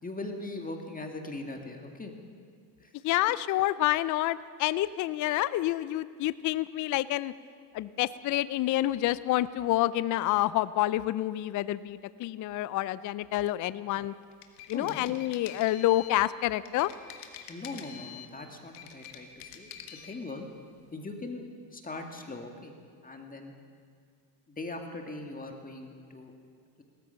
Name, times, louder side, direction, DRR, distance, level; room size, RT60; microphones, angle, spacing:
voice 1, 0.0-2.1 2.8-2.9 14.7-15.0 17.5-20.5 20.9-22.8 23.0-23.5 24.5-26.3, left 2 dB, 15° left, 3 dB, 2.0 m, -40 dB
voice 2, 3.0-7.3 7.7-14.1 14.7-16.9, left 15 dB, 40° left, 17 dB, 0.5 m, -28 dB
sound 1, 14.2-16.2 16.7-18.3 18.7-20.2, left 9 dB, 85° left, 1.6 m, -46 dB
18.5 x 13.5 x 5.7 m, 2.1 s
supercardioid pair, 95°, 47 cm